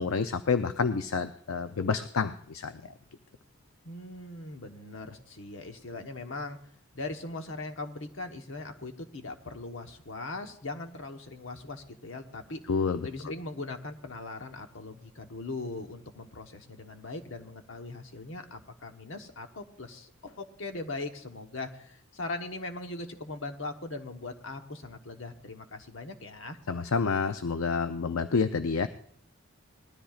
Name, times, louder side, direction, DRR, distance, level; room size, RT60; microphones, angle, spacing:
voice 1, 0.0-2.9 12.7-13.1 26.7-28.9, left 5 dB, 80° left, 10 dB, 0.5 m, -28 dB
voice 2, 3.8-6.6 6.9-12.6 13.0-26.6, left 2 dB, 65° left, 5 dB, 1.2 m, -40 dB
20.0 x 13.0 x 2.4 m, 0.64 s
head